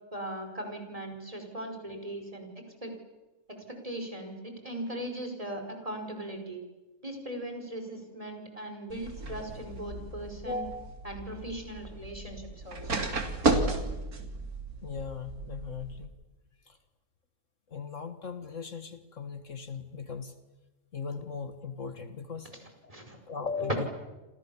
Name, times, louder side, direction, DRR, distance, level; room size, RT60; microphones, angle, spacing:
voice 1, 0.1-2.5 2.8-2.9 3.5-6.6 7.0-10.6 11.0-13.1 13.7-13.9 22.5-22.6 22.9-23.2, right 1 dB, 25° right, 5 dB, 5.5 m, -39 dB
sound 1, 8.9-16.1, right 3 dB, 90° right, 3.4 m, -33 dB
voice 2, 10.4-10.9 14.8-16.1 16.7-16.8 17.7-20.3 20.9-22.5 23.3-23.9, left 4 dB, 60° left, 9 dB, 1.8 m, -38 dB
29.5 x 26.5 x 7.3 m, 1.1 s
omnidirectional pair, 1.5 m